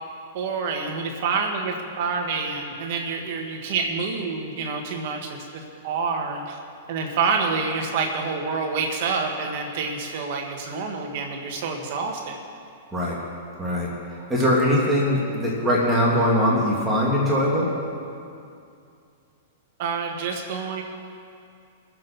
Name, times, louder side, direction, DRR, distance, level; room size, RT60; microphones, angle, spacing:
voice 1, 0.3-6.6 6.9-12.4 19.8-20.8, right 4 dB, 55° right, 2 dB, 2.0 m, -27 dB
voice 2, 13.6-13.9 14.3-17.7, equal, 10° right, -5 dB, 2.5 m, -21 dB
23.0 x 7.7 x 4.4 m, 2.4 s
hypercardioid pair, 135°, 0 cm